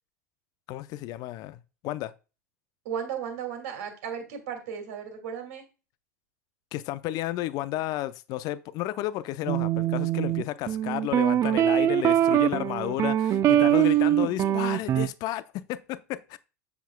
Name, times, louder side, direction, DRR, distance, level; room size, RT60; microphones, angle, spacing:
voice 1, 0.7-2.1 6.7-16.4, left 15 dB, 45° left, 0.5 m, -32 dB
voice 2, 2.8-5.6 13.6-14.6, right 7 dB, 60° right, 2.3 m, -36 dB
sound 1, 9.5-15.1, right 11 dB, 35° right, 0.4 m, -23 dB
7.3 x 6.9 x 2.2 m
figure-of-eight pair, 85°, 9 cm